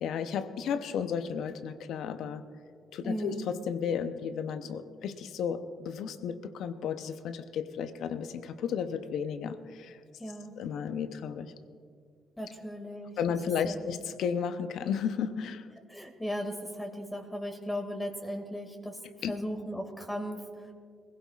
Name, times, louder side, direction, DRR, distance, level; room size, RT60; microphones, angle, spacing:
voice 1, 0.0-2.4 2.9-10.0 10.6-11.5 13.2-15.7 19.2-19.3, left 7 dB, 75° left, 11 dB, 0.7 m, -33 dB
voice 2, 3.0-3.4 10.2-10.6 12.4-13.4 13.6-13.9 15.9-19.0 19.3-20.7, equal, 10° left, 2 dB, 2.1 m, -37 dB
21.5 x 16.0 x 2.4 m, 2.2 s
hypercardioid pair, 50°, 0 cm